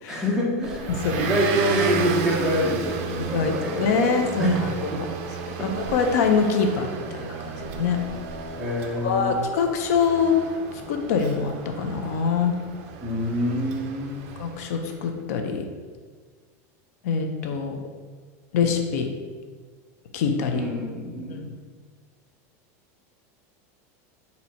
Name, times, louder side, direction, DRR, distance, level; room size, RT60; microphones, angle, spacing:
voice 1, 0.1-0.9 1.2-4.6 4.9-5.0 5.6-5.7 8.6-9.4 13.0-14.3 20.5-21.4, equal, 5° right, -4 dB, 0.7 m, -26 dB
Motor vehicle (road) / Engine, 0.6-14.8, right 4 dB, 55° right, 0.5 m, -33 dB
voice 2, 3.2-5.1 5.6-8.0 9.0-10.3 10.9-12.6 14.4-15.6 17.0-17.8 18.5-19.1 20.1-20.6 21.3-21.5, left 5 dB, 75° left, 4 dB, 0.5 m, -24 dB
4.1 x 2.7 x 4.2 m, 1.5 s
supercardioid pair, 160°, 9 cm